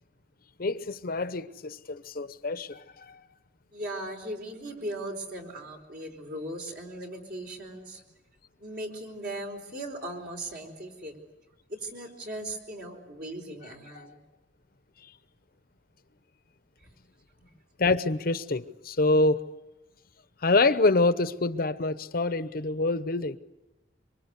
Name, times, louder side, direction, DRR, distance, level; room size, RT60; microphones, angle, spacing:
voice 1, 0.6-3.2 13.9-14.2 15.0-15.1 17.8-19.4 20.4-23.4, left 3 dB, 55° left, 0.8 m, -26 dB
voice 2, 3.7-8.0 8.6-11.1 11.7-14.2 16.8-16.9, right 1 dB, 55° right, 4.5 m, -38 dB
26.0 x 24.0 x 8.2 m
head